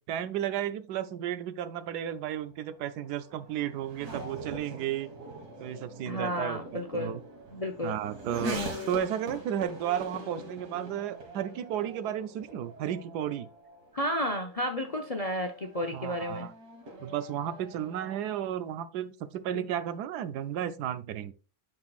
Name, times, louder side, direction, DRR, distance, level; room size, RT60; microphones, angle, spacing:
voice 1, 0.0-5.1 5.6-7.2 7.8-13.5 15.9-16.5 17.0-21.3, right 10 dB, 90° right, 1.2 m, -33 dB
Race car auto racing / Accelerating revving vroom, 2.0-18.3, equal, 75° right, 2.1 m, -43 dB
voice 2, 6.1-7.1 7.5-8.0 13.9-16.5 19.5-19.6, equal, 40° left, 0.5 m, -32 dB
9.4 x 5.6 x 2.4 m
omnidirectional pair, 1.7 m